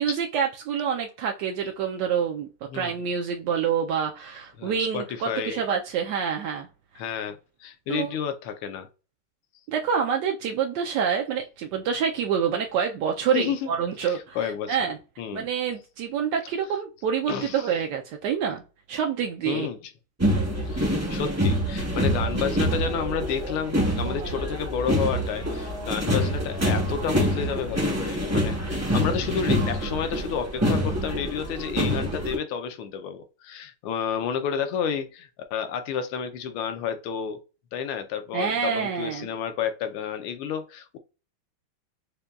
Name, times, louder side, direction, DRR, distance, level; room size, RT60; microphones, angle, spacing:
voice 1, 0.0-2.5 2.7-6.7 6.9-7.0 7.9-8.2 9.7-15.0 15.3-18.6 18.9-19.7 38.3-39.3, right 7 dB, 80° right, 0.9 m, -27 dB
voice 2, 4.6-5.6 7.0-8.9 13.3-13.7 14.0-14.9 15.2-15.5 17.3-17.7 19.4-19.8 20.7-37.4 37.7-41.0, left 7 dB, 80° left, 1.5 m, -31 dB
sound 1, 20.2-32.4, equal, 25° right, 0.3 m, -26 dB
6.6 x 2.2 x 2.3 m
omnidirectional pair, 2.3 m